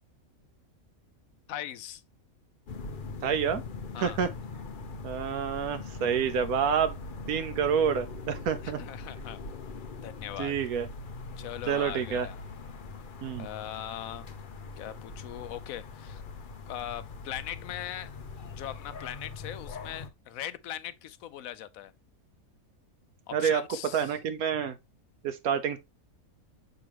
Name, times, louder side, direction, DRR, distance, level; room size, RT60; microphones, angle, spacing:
voice 1, 1.5-2.0 3.9-4.2 8.6-9.4 10.0-10.5 11.4-12.4 13.3-14.3 14.8-16.2 16.7-18.1 18.5-21.9 23.3-24.1, left 11 dB, 75° left, 1.0 m, -40 dB
sound 1, 2.7-20.1, left 4 dB, 45° left, 0.7 m, -42 dB
voice 2, 3.2-3.6 4.0-4.3 5.0-7.0 7.3-8.8 10.4-10.9 11.7-12.3 13.2-13.5 23.3-23.6 23.9-24.7 25.2-25.8, right 7 dB, 85° right, 1.2 m, -28 dB
6.9 x 5.0 x 2.9 m
omnidirectional pair, 1.5 m